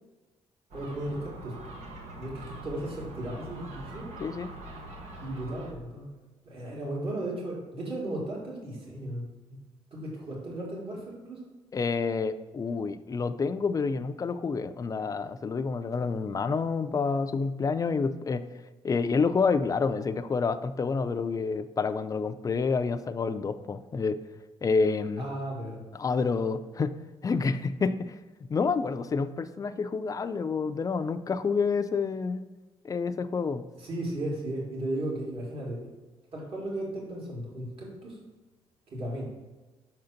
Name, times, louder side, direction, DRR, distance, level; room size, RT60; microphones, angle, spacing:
voice 1, 0.7-1.6 2.2-4.1 5.2-6.0 6.4-9.6 9.9-11.5 25.2-25.8 33.8-35.9 36.3-38.2 38.9-39.2, right 1 dB, 55° right, -4 dB, 2.3 m, -35 dB
Gull seagull, 0.7-5.7, right 2 dB, 85° right, 1.1 m, -43 dB
voice 2, 4.2-4.5 11.7-18.4 18.8-24.2 24.6-25.2 25.9-26.9 27.2-28.2 28.5-32.5 32.8-33.6, left 4 dB, 30° left, 11 dB, 0.4 m, -28 dB
5.9 x 3.9 x 5.7 m, 1.2 s
cardioid pair, 90°, 11 cm